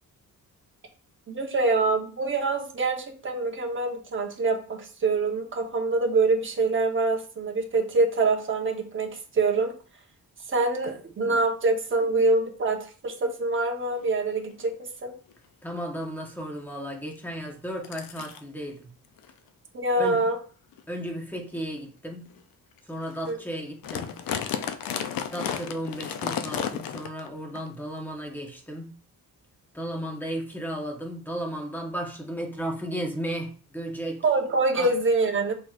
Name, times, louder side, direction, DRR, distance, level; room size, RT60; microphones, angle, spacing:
voice 1, 1.3-9.7 10.5-14.7 15.0-15.1 19.7-20.4 23.2-23.4 34.2-35.5, right 3 dB, 35° right, 2 dB, 1.0 m, -25 dB
sound 1, 14.0-14.1 14.5-14.8 15.3-15.4 15.8-16.1 17.2-17.3 17.8-18.4 19.2-19.3 19.9-20.1 20.7-20.8 21.5-21.7 22.3-22.4 22.8-22.9 23.0-23.3 23.6-27.3 27.6-27.7 28.5-28.6, left 8 dB, 75° left, 0.5 m, -33 dB
voice 2, 15.6-18.9 20.0-20.2 20.9-22.3 22.8-24.1 25.2-28.9 29.7-34.2 34.7-34.9, equal, 5° left, 1 dB, 1.0 m, -34 dB
5.8 x 3.1 x 2.4 m, 0.40 s
cardioid pair, 120°, 35 cm